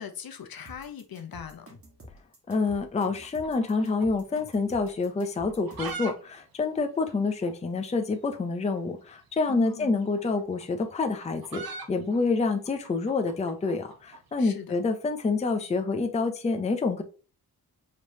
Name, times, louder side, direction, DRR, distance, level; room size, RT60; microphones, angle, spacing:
voice 1, 0.0-1.8 9.4-9.9 14.4-14.7, left 8 dB, 70° left, 0.7 m, -41 dB
sound 1, 0.7-6.0, equal, 35° right, 1.3 m, -49 dB
voice 2, 2.5-17.0, left 3 dB, 20° left, 0.4 m, -27 dB
sound 2, 3.2-4.5 4.8-4.9 5.4-6.1 6.4-6.5 6.7-6.8 7.4-7.5 8.7-8.9 10.0-14.2, right 4 dB, 65° right, 0.8 m, -41 dB
5.0 x 3.1 x 2.7 m
wide cardioid pair, 120°, 38 cm